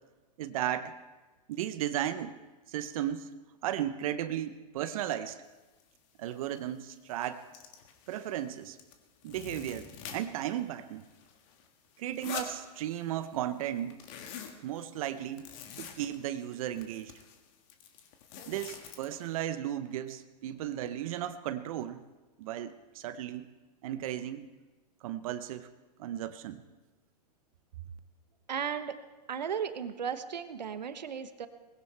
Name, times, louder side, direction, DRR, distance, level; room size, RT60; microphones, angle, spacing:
voice 1, 0.4-0.9 1.5-2.3 2.7-3.3 3.6-5.4 6.2-7.4 8.1-8.8 9.2-9.9 10.1-11.0 12.0-14.0 14.6-15.5 15.8-17.1 18.5-22.0 22.4-23.5 23.8-24.5 25.0-25.7 26.0-26.6, right 11 dB, 55° right, 11 dB, 0.8 m, -35 dB
sound 1, 5.8-5.9 6.3-6.6 6.9-8.5 8.8-10.6 10.9-13.3 13.6-19.4, left 7 dB, 50° left, 1.9 m, -46 dB
voice 2, 28.5-29.0 29.3-31.5, right 7 dB, 85° right, 11 dB, 1.1 m, -35 dB
20.0 x 16.5 x 3.4 m, 1.2 s
hypercardioid pair, 115°, 21 cm